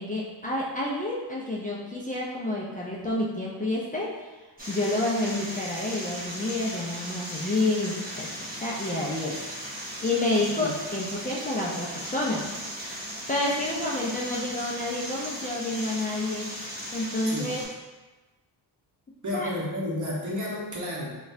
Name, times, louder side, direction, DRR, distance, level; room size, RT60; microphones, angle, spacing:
voice 1, 0.0-4.1 4.7-8.3 8.5-9.5 10.0-12.5 13.3-16.5 16.9-17.6 19.3-19.5, left 2 dB, 20° left, -6 dB, 0.5 m, -29 dB
sound 1, 4.6-17.6, equal, 20° right, 1.1 m, -37 dB
voice 2, 19.2-21.1, left 1 dB, 40° right, -4 dB, 1.0 m, -31 dB
3.9 x 2.4 x 2.6 m, 1.2 s
cardioid pair, 80°, 45 cm